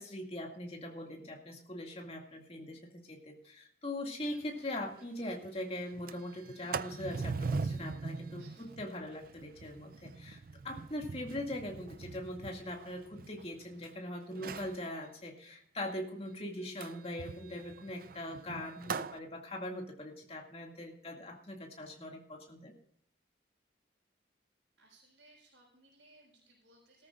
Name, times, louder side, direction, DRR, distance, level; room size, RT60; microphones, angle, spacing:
voice 1, 0.0-22.7, left 1 dB, 30° left, 1 dB, 2.2 m, -41 dB
Sliding door, 4.3-4.4 4.8-4.9 5.2-5.5 5.9-13.9 14.3-14.8 16.8-19.2, right 4 dB, 50° right, 0.4 m, -41 dB
voice 2, 8.3-8.7 24.8-27.1, right 2 dB, 80° right, -6 dB, 5.9 m, -62 dB
18.5 x 13.5 x 2.5 m, 0.67 s
head